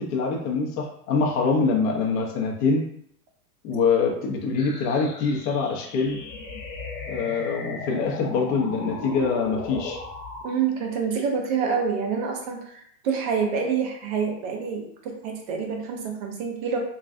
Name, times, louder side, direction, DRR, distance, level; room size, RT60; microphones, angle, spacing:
voice 1, 0.0-2.8 3.6-6.2 7.1-10.0, left 4 dB, 35° left, -1 dB, 0.7 m, -24 dB
sound 1, 4.6-10.6, left 4 dB, 60° left, 1.1 m, -36 dB
voice 2, 10.4-16.8, right 6 dB, 30° right, 2 dB, 0.3 m, -27 dB
3.2 x 2.4 x 2.5 m, 0.69 s
hypercardioid pair, 130°, 47 cm